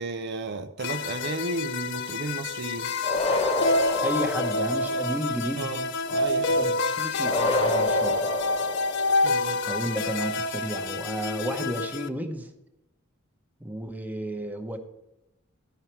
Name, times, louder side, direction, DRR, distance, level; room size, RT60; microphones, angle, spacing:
voice 1, 0.0-2.9 5.6-6.6 9.2-9.6, right 3 dB, 55° right, 0.5 m, -33 dB
sound 1, 0.8-12.1, left 2 dB, 60° left, 0.5 m, -27 dB
sound 2, 3.0-5.1 7.2-9.3, left 1 dB, 30° left, 1.2 m, -28 dB
voice 2, 4.0-5.7 6.6-8.3 9.6-12.5 13.6-14.8, right 1 dB, 10° right, 0.9 m, -32 dB
14.0 x 5.6 x 4.5 m
head